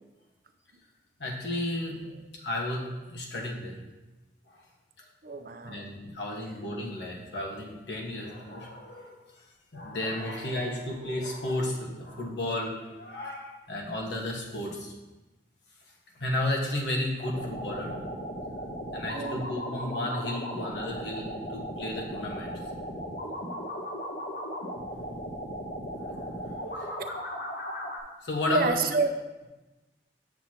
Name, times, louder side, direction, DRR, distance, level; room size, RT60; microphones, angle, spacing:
voice 1, 1.2-2.0 2.4-3.7 4.5-4.6 5.6-9.2 9.7-14.9 16.1-17.9 18.9-22.6 26.6-27.0 28.2-28.7, left 1 dB, 80° left, -1 dB, 1.4 m, -33 dB
voice 2, 5.2-5.9 19.1-19.5 28.5-29.1, right 3 dB, 55° right, 7 dB, 0.6 m, -28 dB
sound 1, 17.2-28.0, equal, 55° left, 1.0 m, -36 dB
7.7 x 6.9 x 2.9 m, 1.1 s
head